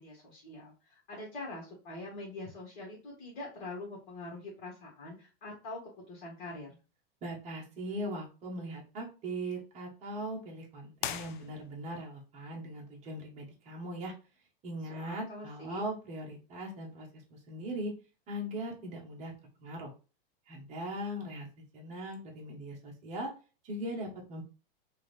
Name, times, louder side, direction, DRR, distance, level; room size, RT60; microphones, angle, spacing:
voice 1, 0.0-5.8 6.1-6.8 14.9-15.9, left 2 dB, 30° left, -3 dB, 1.8 m, -44 dB
voice 2, 7.2-14.1 14.6-17.9 18.3-19.3 19.6-19.9 20.5-21.5 21.7-23.3 23.6-24.4, right 1 dB, 25° right, -2 dB, 1.2 m, -40 dB
sound 1, 11.0-12.0, left 10 dB, 55° left, 0.5 m, -39 dB
3.7 x 2.8 x 3.3 m, 0.33 s
supercardioid pair, 150°, 29 cm